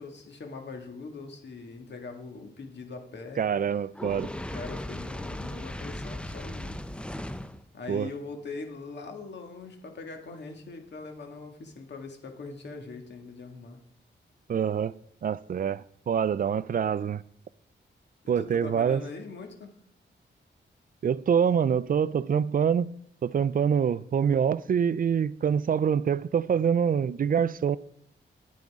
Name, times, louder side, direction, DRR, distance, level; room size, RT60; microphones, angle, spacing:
voice 1, 0.0-3.4 4.5-6.8 7.7-13.8 18.2-19.7, left 4 dB, 65° left, 1.9 m, -41 dB
voice 2, 3.4-4.3 7.9-8.1 14.5-17.2 18.3-19.0 21.0-22.9 23.2-27.8, right 7 dB, 50° right, 0.4 m, -25 dB
Fire, 3.9-7.6, left 1 dB, 5° left, 0.5 m, -37 dB
10.5 x 9.0 x 3.6 m
cardioid pair, 90°, 19 cm